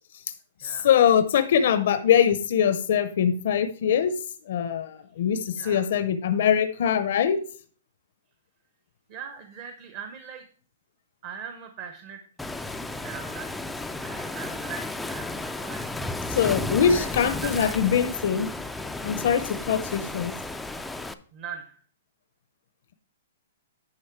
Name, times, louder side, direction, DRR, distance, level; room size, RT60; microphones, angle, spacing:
voice 1, 0.6-4.1 4.5-7.4 16.3-18.5 19.0-20.3, left 8 dB, 55° left, 9 dB, 0.6 m, -23 dB
voice 2, 5.5-5.9 9.1-10.4 11.2-12.2 13.0-13.5 14.0-16.2 16.8-17.1 17.4-17.8 21.3-21.8, right 7 dB, 30° right, 6 dB, 0.8 m, -40 dB
Waves surf, 12.4-21.1, left 2 dB, 5° left, 0.3 m, -33 dB
9.7 x 5.3 x 4.5 m, 0.43 s
hypercardioid pair, 170°, 0 cm